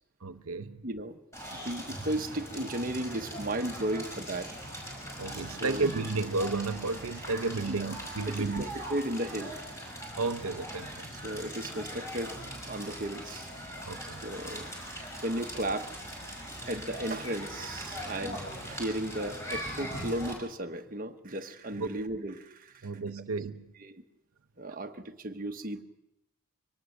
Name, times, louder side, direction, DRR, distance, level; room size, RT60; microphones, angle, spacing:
voice 1, 0.2-0.8 5.2-8.7 10.1-11.1 13.8-14.2 21.7-22.0 22.8-23.6, right 3 dB, 80° right, 8 dB, 0.7 m, -32 dB
voice 2, 0.8-1.2 1.5-4.5 5.6-5.8 7.7-7.9 8.3-9.5 11.2-12.4 12.6-13.5 14.2-14.7 15.2-15.9 16.7-22.7 23.8-24.0 24.6-25.8, right 1 dB, 40° right, 5 dB, 1.1 m, -35 dB
Crackle, 1.3-20.3, equal, 15° left, 5.8 m, -41 dB
23.5 x 18.5 x 6.5 m, 0.88 s
head